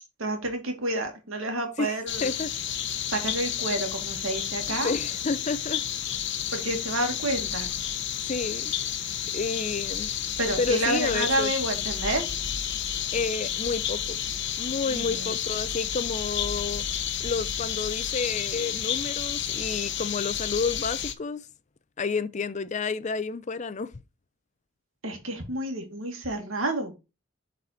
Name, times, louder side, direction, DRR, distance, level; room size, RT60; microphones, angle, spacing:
voice 1, 0.2-2.3 3.1-4.9 6.5-7.7 10.4-12.2 14.9-15.3 25.0-26.9, right 1 dB, 80° right, 2.1 m, -29 dB
sound 1, 2.1-21.1, left 9 dB, 60° left, 0.8 m, -31 dB
voice 2, 2.2-2.5 4.8-5.8 8.3-8.7 9.3-10.1 10.6-11.5 13.1-14.2 14.6-16.9 17.2-21.5 22.0-23.9, left 4 dB, 35° left, 0.4 m, -30 dB
7.5 x 4.2 x 4.2 m
head